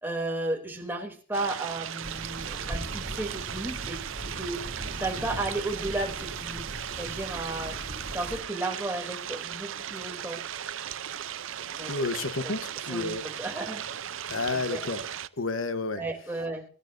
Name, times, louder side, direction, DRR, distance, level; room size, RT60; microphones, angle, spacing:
voice 1, 0.0-4.6 5.0-6.6 7.0-7.8 8.1-10.4 11.7-12.1 12.9-13.1 13.4-13.8 14.5-14.8 16.0-16.6, right 2 dB, 10° right, 3.0 m, -33 dB
sound 1, 1.3-15.3, right 9 dB, 75° right, 0.6 m, -37 dB
sound 2, 2.0-8.4, right 1 dB, 45° right, 2.8 m, -39 dB
voice 2, 11.9-13.3 14.3-15.0 15.4-16.0, left 3 dB, 80° left, 1.2 m, -31 dB
25.0 x 12.5 x 2.7 m
head